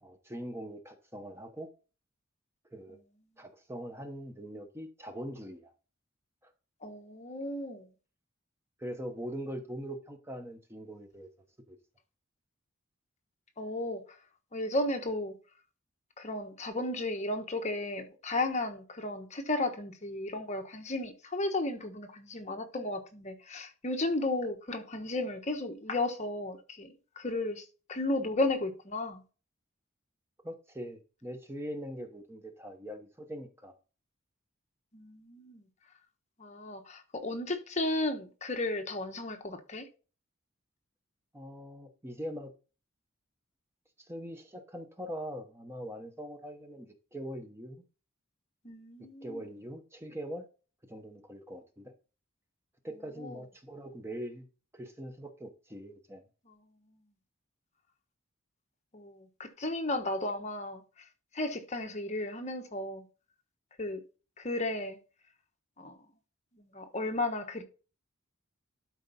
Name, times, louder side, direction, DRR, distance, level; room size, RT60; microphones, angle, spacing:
voice 1, 0.0-1.7 2.7-3.0 3.4-5.7 6.4-6.5 8.8-11.3 11.7-11.8 30.4-33.7 41.3-42.5 44.0-47.8 49.2-50.5 50.9-51.9 52.8-54.5 54.7-56.2, equal, 10° right, 1.0 m, -42 dB
voice 2, 6.8-7.9 13.6-14.0 14.5-15.3 16.2-29.2 34.9-35.6 36.4-39.9 48.6-49.5 53.2-53.4 56.5-56.6 58.9-60.8 61.3-63.0 63.8-64.0 64.4-65.0 65.8-66.0 66.6-67.6, left 2 dB, 35° left, 1.1 m, -34 dB
12.0 x 4.5 x 4.1 m
head